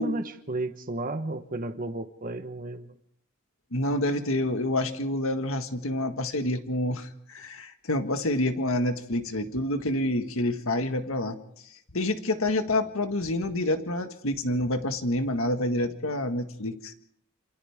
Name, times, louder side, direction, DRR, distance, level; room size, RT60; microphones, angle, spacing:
voice 1, 0.0-2.9, right 2 dB, 40° right, 7 dB, 1.2 m, -33 dB
voice 2, 3.7-11.4 11.9-16.9, left 1 dB, 65° left, 7 dB, 1.8 m, -28 dB
28.0 x 28.0 x 3.7 m, 0.70 s
head